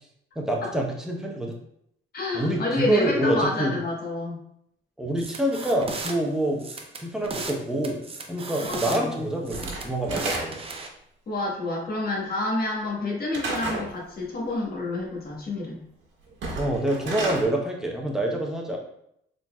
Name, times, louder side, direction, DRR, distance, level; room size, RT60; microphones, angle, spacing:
voice 1, 0.4-1.5 2.3-3.7 5.0-8.0 8.3-10.6 16.5-18.8, right 1 dB, 5° right, -1 dB, 0.9 m, -26 dB
voice 2, 2.1-4.4 8.7-9.3 11.3-15.8, left 2 dB, 50° left, -2 dB, 1.3 m, -29 dB
sound 1, 5.2-6.1 6.6-7.6 7.8-9.0 9.5-10.9, right 3 dB, 30° right, 0.6 m, -35 dB
Slam / Wood, 9.5-10.8 13.3-13.9 16.3-17.4, right 2 dB, 75° right, 1.5 m, -31 dB
3.9 x 3.9 x 2.3 m, 0.74 s
cardioid pair, 90°, 20 cm